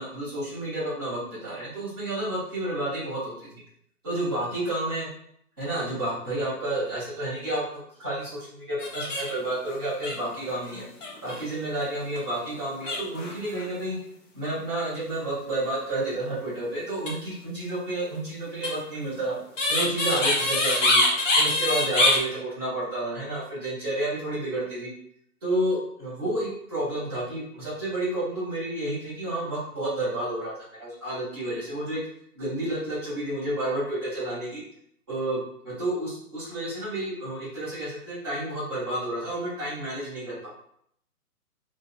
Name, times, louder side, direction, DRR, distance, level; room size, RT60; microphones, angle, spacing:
voice 1, 0.0-3.6 4.0-5.1 5.6-10.8 11.2-14.0 14.3-19.4 19.7-21.0 21.3-24.9 25.4-32.0 32.3-34.6 35.1-40.5, right 1 dB, 15° right, -13 dB, 1.4 m, -30 dB
sound 1, 8.8-9.5 9.7-9.8 10.0-11.4 12.0-12.2 12.8-13.7 16.9-17.1 18.6-22.2, left 2 dB, 55° left, 0.9 m, -24 dB
4.2 x 2.3 x 2.2 m, 0.68 s
hypercardioid pair, 175°, 46 cm